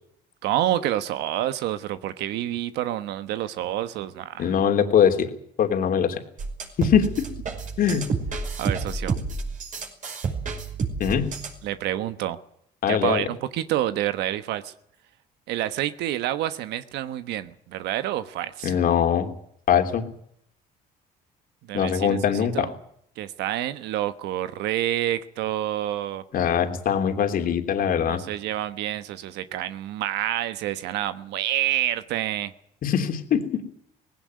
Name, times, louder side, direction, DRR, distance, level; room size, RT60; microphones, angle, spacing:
voice 1, 0.4-4.5 8.6-9.2 11.6-12.4 12.9-14.7 15.5-18.8 21.7-22.2 22.5-22.7 23.2-26.2 28.1-32.5, right 13 dB, 85° right, 12 dB, 1.2 m, -28 dB
voice 2, 4.4-5.3 5.6-6.2 6.8-7.3 7.8-8.1 11.0-11.3 12.8-13.2 18.6-19.3 19.7-20.0 21.7-22.7 26.3-28.2 32.8-33.6, left 8 dB, 55° left, 6 dB, 3.1 m, -22 dB
sound 1, 6.4-11.6, right 4 dB, 50° right, 5.5 m, -30 dB
19.0 x 17.0 x 9.5 m, 0.68 s
cardioid pair, 110°, 17 cm